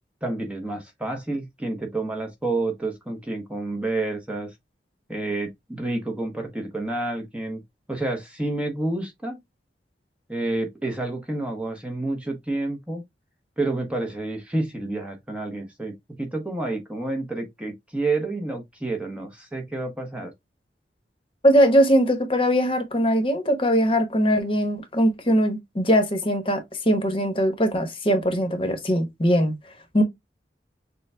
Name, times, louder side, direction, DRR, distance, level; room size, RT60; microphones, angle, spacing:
voice 1, 0.2-4.5 5.1-7.6 7.9-9.4 10.3-13.0 13.6-15.9 16.2-20.3, right 2 dB, 5° right, 0.8 m, -29 dB
voice 2, 21.4-29.5 29.9-30.0, equal, 30° left, 1.0 m, -21 dB
6.7 x 2.3 x 3.3 m
head